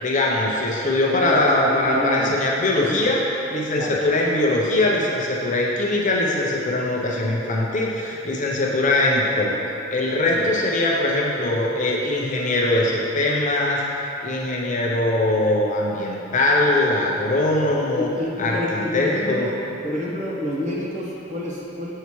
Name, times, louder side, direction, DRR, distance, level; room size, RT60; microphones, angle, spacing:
voice 1, 0.0-3.2 3.5-9.6 9.9-13.8 14.2-18.1 18.4-19.5, left 2 dB, 40° left, -3 dB, 0.7 m, -21 dB
voice 2, 1.0-2.3 2.9-3.0 3.8-4.0 10.3-10.5 17.6-19.6 19.8-21.9, left 1 dB, 35° right, -5 dB, 1.1 m, -29 dB
6.9 x 5.6 x 3.1 m, 2.8 s
head